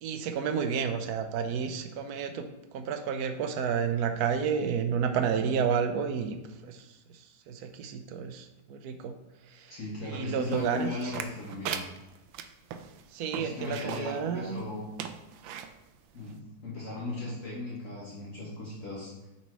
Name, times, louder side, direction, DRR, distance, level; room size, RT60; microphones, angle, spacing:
voice 1, 0.0-2.5 2.7-6.4 6.6-6.9 7.1-9.1 9.5-11.1 13.1-14.6, right 7 dB, 65° right, 7 dB, 1.0 m, -31 dB
voice 2, 9.7-11.8 13.3-14.8 16.1-19.3, left 2 dB, 45° left, -6 dB, 1.8 m, -37 dB
sound 1, 10.5-14.2 14.6-14.7 15.0-15.7 16.3-16.4, right 8 dB, 80° right, 1.3 m, -38 dB
7.1 x 4.2 x 4.7 m, 1.0 s
omnidirectional pair, 2.1 m